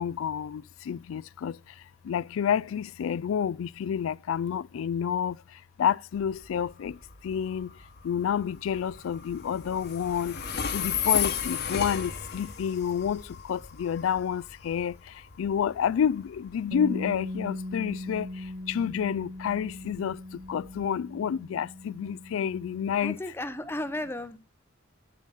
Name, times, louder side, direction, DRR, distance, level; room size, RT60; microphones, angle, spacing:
voice 1, 0.0-1.5 2.1-5.4 5.8-6.9 7.2-7.7 8.0-10.4 10.7-13.2 13.5-14.9 15.4-18.3 18.7-20.2 20.5-23.2, left 8 dB, 80° left, 0.3 m, -29 dB
Train, 6.1-20.9, left 8 dB, 55° left, 1.1 m, -35 dB
Bass guitar, 16.7-23.0, left 1 dB, 75° right, 1.6 m, -39 dB
voice 2, 23.0-24.4, left 1 dB, 10° left, 0.6 m, -34 dB
9.1 x 7.2 x 4.0 m
head